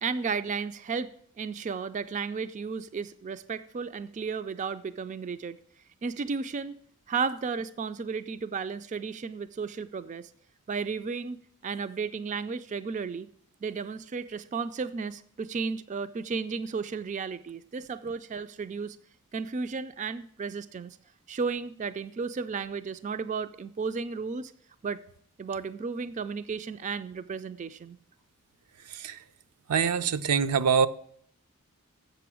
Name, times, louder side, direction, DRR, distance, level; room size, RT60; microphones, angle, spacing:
voice 1, 0.0-5.6 6.0-6.8 7.1-10.3 10.7-13.3 13.6-19.0 19.3-21.0 21.3-24.5 24.8-25.0 25.4-28.0, right 5 dB, 35° right, 0.3 m, -33 dB
voice 2, 28.9-29.2 29.7-30.9, right 6 dB, 85° right, 0.5 m, -24 dB
7.6 x 6.8 x 6.1 m
head